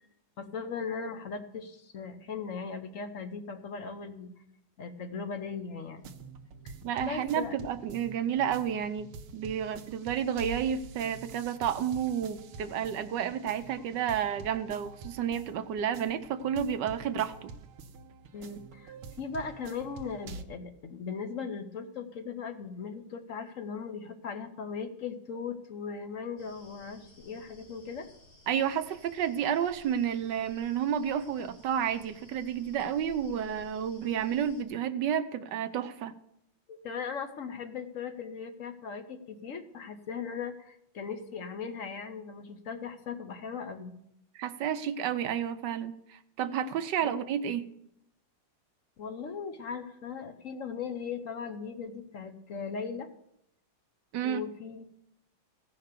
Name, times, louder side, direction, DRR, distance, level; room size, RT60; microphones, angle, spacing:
voice 1, 0.4-4.3 4.8-6.1 6.6-6.7 7.0-7.6 18.3-28.1 36.7-43.9 47.0-47.1 49.0-53.1 54.2-54.9, left 5 dB, 55° left, 8 dB, 0.9 m, -38 dB
sound 1, 6.0-20.4, right 4 dB, 85° right, 1.7 m, -47 dB
voice 2, 6.8-17.5 28.5-36.1 44.3-47.7 54.1-54.4, right 9 dB, 70° right, 10 dB, 1.1 m, -31 dB
sound 2, 26.4-34.6, left 1 dB, 85° left, 3.6 m, -56 dB
16.0 x 5.8 x 6.6 m, 0.76 s
omnidirectional pair, 2.3 m